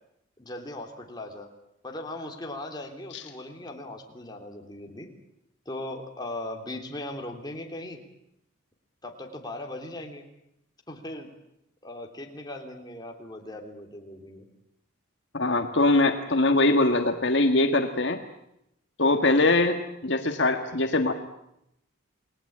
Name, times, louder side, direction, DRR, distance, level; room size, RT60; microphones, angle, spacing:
voice 1, 0.4-1.5 1.8-5.1 5.6-8.0 9.0-10.2 10.9-11.3 11.8-14.5, left 1 dB, 20° left, 2 dB, 3.2 m, -38 dB
voice 2, 15.3-18.2 19.0-21.1, left 2 dB, 60° left, 5 dB, 1.7 m, -22 dB
28.5 x 20.0 x 8.7 m, 0.80 s
head